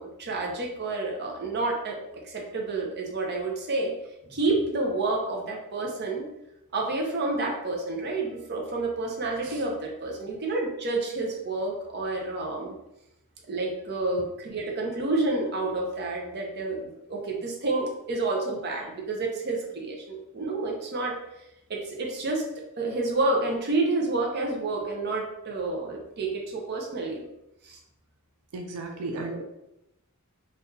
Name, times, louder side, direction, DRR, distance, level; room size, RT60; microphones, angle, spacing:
voice 1, 0.0-2.0 2.2-3.9 4.3-6.3 6.7-12.7 13.5-21.2 21.7-22.4 22.8-27.2 27.6-27.8 29.1-29.4, right 2 dB, 50° right, 0 dB, 0.7 m, -29 dB
voice 2, 28.5-29.4, right 2 dB, 90° right, 2 dB, 0.4 m, -35 dB
3.6 x 2.5 x 2.8 m, 0.86 s
head